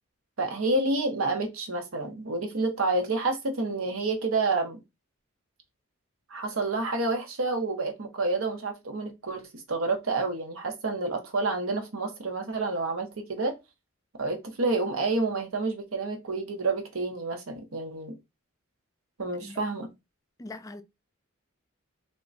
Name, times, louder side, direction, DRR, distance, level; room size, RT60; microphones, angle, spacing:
voice 1, 0.4-4.8 6.3-13.5 14.2-18.2 19.2-19.9, right 3 dB, 75° right, 0.9 m, -29 dB
voice 2, 20.4-20.8, left 2 dB, 15° left, 0.4 m, -41 dB
3.6 x 2.2 x 3.9 m
head